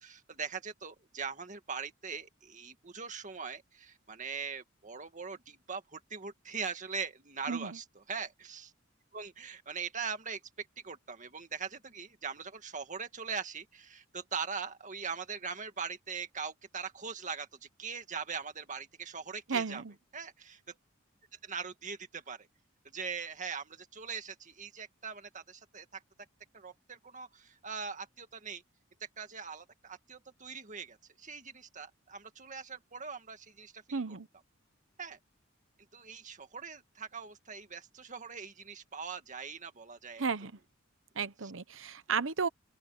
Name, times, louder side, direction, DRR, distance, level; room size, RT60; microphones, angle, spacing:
voice 1, 0.0-8.7 9.1-19.8 20.1-20.7 21.4-22.5 22.8-26.0 26.5-28.6 29.0-34.2 35.0-35.2 35.9-40.2 41.4-41.5, right 5 dB, 40° right, 1.9 m, -41 dB
voice 2, 7.5-7.8 19.5-19.9 33.9-34.3 40.2-40.5 41.2-42.5, right 5 dB, 70° right, 0.9 m, -33 dB
open air
head